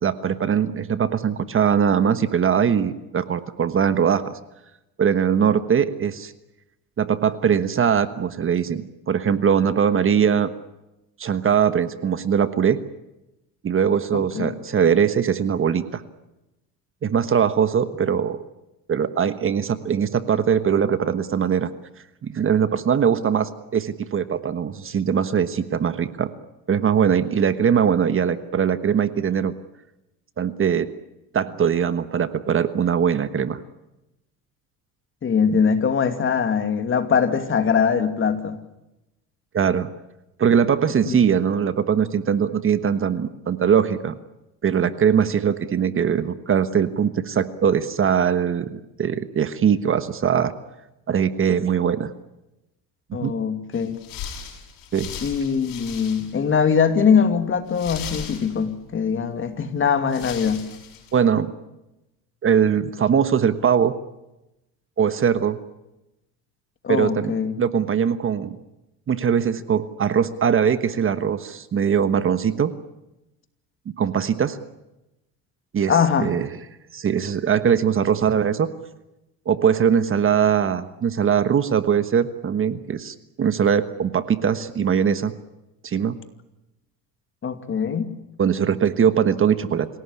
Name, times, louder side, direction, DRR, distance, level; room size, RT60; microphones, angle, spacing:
voice 1, 0.0-4.3 5.0-6.3 7.0-10.5 11.2-12.8 13.6-16.0 17.0-18.4 18.9-21.7 22.2-26.3 26.7-29.5 30.4-30.9 31.3-33.6 35.5-35.6 39.5-39.9 40.4-44.1 44.6-50.5 51.1-52.1 53.2-53.3 54.9-55.1 61.1-61.5 62.4-63.9 65.0-65.6 66.9-68.6 69.1-72.7 74.0-74.6 75.7-75.9 76.2-76.5 76.9-78.7 79.5-85.3 85.8-86.2 88.4-89.9, right 7 dB, 35° right, 12 dB, 1.3 m, -21 dB
voice 2, 14.1-14.5 35.2-38.6 41.1-41.2 53.1-54.0 55.2-60.7 66.8-67.5 75.9-76.3 87.4-88.1, left 6 dB, 35° left, 8 dB, 2.5 m, -22 dB
sound 1, 53.7-56.5 56.8-56.9 57.7-58.9 59.7-59.8 60.1-61.2, left 8 dB, 70° left, 6.8 m, -37 dB
27.0 x 17.5 x 9.9 m, 0.94 s
cardioid pair, 110°, 36 cm